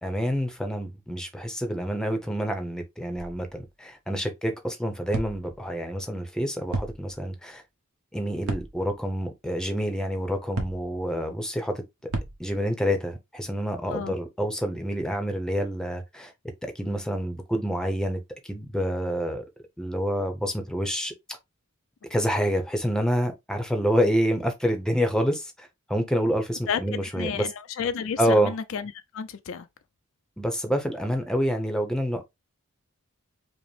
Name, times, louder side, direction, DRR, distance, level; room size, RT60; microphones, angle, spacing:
voice 1, 0.0-7.6 8.1-12.1 12.4-16.3 16.6-19.4 19.8-21.4 22.1-27.5 28.2-28.5 30.4-32.2, equal, 5° left, 0.6 m, -27 dB
sound 1, 3.2-3.7 5.1-5.7 6.7-7.3 8.5-9.1 10.6-11.1 12.1-12.7, right 2 dB, 80° right, 1.0 m, -34 dB
voice 2, 26.7-29.7, left 7 dB, 60° left, 0.4 m, -32 dB
5.1 x 2.0 x 3.2 m
head